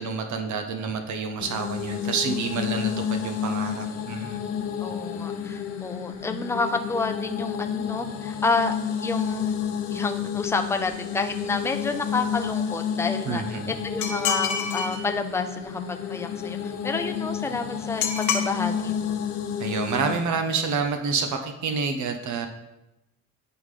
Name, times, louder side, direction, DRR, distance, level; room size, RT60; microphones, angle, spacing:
voice 1, 0.0-4.4 13.2-13.8 19.6-22.5, right 5 dB, 70° right, 5 dB, 0.7 m, -28 dB
sound 1, 1.4-20.3, left 8 dB, 55° left, 0.9 m, -30 dB
voice 2, 4.8-8.7 9.0-9.5 9.9-19.2, left 3 dB, 10° left, 5 dB, 0.5 m, -29 dB
sound 2, 14.0-15.0 18.0-18.5, left 6 dB, 80° left, 0.9 m, -26 dB
10.0 x 3.7 x 3.2 m, 0.93 s
cardioid pair, 90°, 30 cm